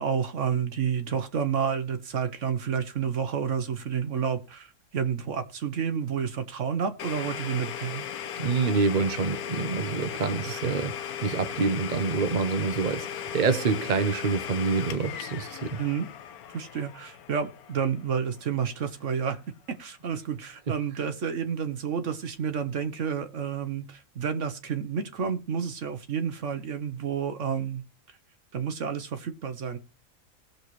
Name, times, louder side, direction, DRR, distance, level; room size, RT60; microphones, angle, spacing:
voice 1, 0.0-8.1 10.6-10.8 15.8-16.1 16.5-19.4 19.7-27.8 28.5-29.8, right 7 dB, 60° right, 1.1 m, -30 dB
Domestic sounds home sounds, 7.0-18.6, left 9 dB, 90° left, 1.3 m, -37 dB
voice 2, 8.4-11.0 11.2-15.8, right 4 dB, 40° right, 0.8 m, -27 dB
19.0 x 6.5 x 3.1 m
omnidirectional pair, 1.5 m